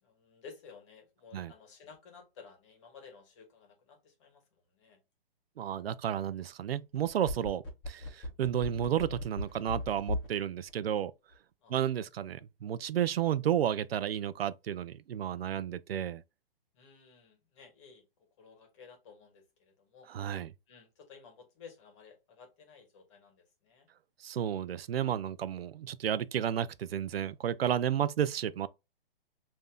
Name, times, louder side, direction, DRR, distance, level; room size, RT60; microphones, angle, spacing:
voice 1, 0.0-5.0 11.6-11.7 16.7-20.1 20.7-23.9, left 5 dB, 30° left, 1.3 m, -55 dB
voice 2, 5.6-11.1 11.7-16.2 20.1-20.5 24.2-28.7, right 10 dB, 90° right, 0.5 m, -32 dB
sound 1, 6.9-10.4 10.7-10.8, left 2 dB, 15° left, 1.0 m, -36 dB
5.3 x 2.7 x 2.2 m
hypercardioid pair, 160°, 29 cm